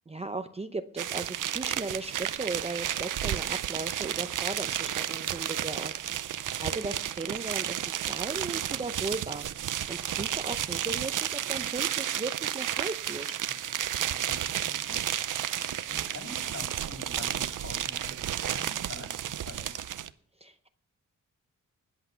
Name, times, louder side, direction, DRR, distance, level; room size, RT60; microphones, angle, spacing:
voice 1, 0.1-13.3 20.4-20.7, right 3 dB, 20° right, 8 dB, 0.6 m, -37 dB
sound 1, 1.0-20.1, right 10 dB, 70° right, 0.6 m, -32 dB
voice 2, 13.8-19.9, left 2 dB, 50° left, 2 dB, 7.7 m, -46 dB
20.0 x 8.3 x 5.7 m, 0.62 s
wide cardioid pair, 120°, 32 cm